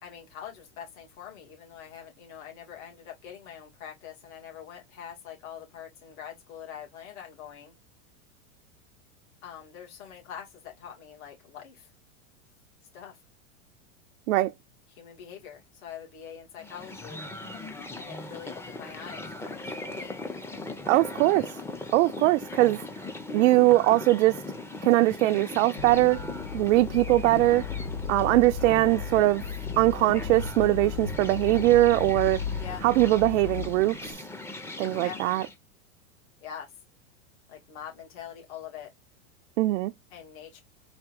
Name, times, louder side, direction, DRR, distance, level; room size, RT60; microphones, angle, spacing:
voice 1, 0.0-7.7 9.4-11.9 12.9-13.2 14.9-17.2 18.0-20.2 32.6-32.9 35.0-35.2 36.4-36.7 37.5-38.9 40.1-40.6, left 8 dB, 60° left, 2.5 m, -44 dB
Gnous-Petit galop+amb, 16.6-35.5, left 2 dB, 5° left, 0.6 m, -39 dB
voice 2, 20.8-21.6 21.9-22.9 23.3-24.4 24.8-26.3 26.5-27.7 28.1-29.4 29.8-32.4 32.8-34.2 34.8-35.4 39.6-39.9, right 17 dB, 65° right, 0.5 m, -21 dB
sound 1, 25.8-34.1, left 6 dB, 75° left, 1.2 m, -36 dB
4.3 x 2.8 x 3.6 m
hypercardioid pair, 120°, 40 cm